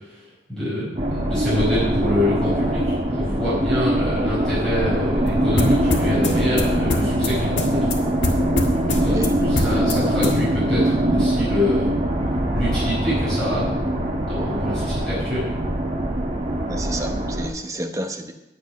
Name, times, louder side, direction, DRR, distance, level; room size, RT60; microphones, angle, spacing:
voice 1, 0.5-7.9 8.9-9.2 9.4-11.9 12.5-13.9 14.2-15.5, left 1 dB, 5° left, -10 dB, 5.1 m, -26 dB
sound 1, 1.0-17.5, right 1 dB, 35° right, 1.4 m, -22 dB
sound 2, 5.3-10.4, left 2 dB, 80° left, 1.7 m, -26 dB
voice 2, 16.7-18.3, right 1 dB, 15° right, 4 dB, 0.9 m, -30 dB
9.7 x 9.6 x 5.8 m, 0.92 s
head